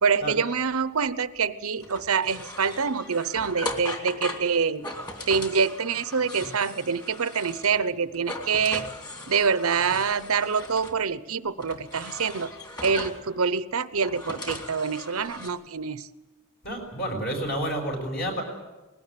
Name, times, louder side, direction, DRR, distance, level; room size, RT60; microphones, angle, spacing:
voice 1, 0.0-4.9 5.3-8.9 9.3-12.5 12.8-16.1, right 5 dB, 80° right, 14 dB, 0.9 m, -26 dB
sound 1, 1.8-7.9 8.1-11.0 11.6-13.3 13.8-15.5, left 1 dB, 20° left, 2.8 m, -38 dB
voice 2, 16.6-18.4, right 1 dB, 45° left, 2 dB, 6.3 m, -30 dB
20.5 x 17.0 x 9.8 m, 1.1 s
head